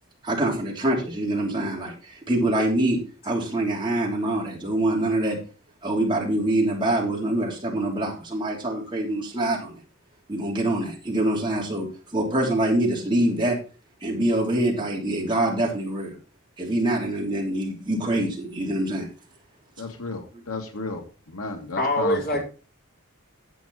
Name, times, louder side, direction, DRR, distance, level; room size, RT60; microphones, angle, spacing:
voice 1, 0.2-3.0 3.2-5.4 5.8-9.8 10.3-11.9 12.1-13.6 14.0-16.1 16.6-19.1 20.3-20.4, right 1 dB, 20° right, 3.3 m, -25 dB
voice 2, 19.8-21.0 21.3-22.2, left 3 dB, 85° left, 2.1 m, -32 dB
voice 3, 21.8-22.4, left 1 dB, 45° left, 4.3 m, -24 dB
10.5 x 8.1 x 4.1 m
head